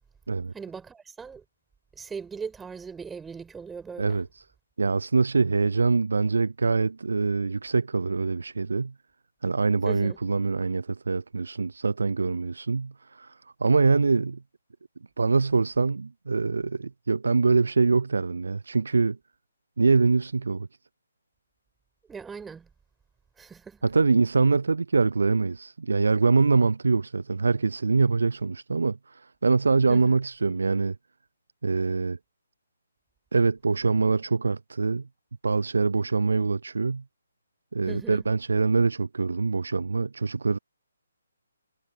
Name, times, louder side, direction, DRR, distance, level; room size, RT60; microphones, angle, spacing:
voice 1, 0.5-1.4 1.9-4.2 9.8-10.2 22.1-22.7 23.4-23.9 29.9-30.2 37.9-38.2, right 5 dB, 5° right, 5.9 m, -39 dB
voice 2, 4.0-4.4 4.8-8.9 9.4-14.4 15.2-19.2 19.8-20.7 23.8-31.0 31.6-32.2 33.3-35.0 35.4-37.0 37.7-40.6, right 4 dB, 65° right, 0.7 m, -24 dB
figure-of-eight pair, 140°, 0 cm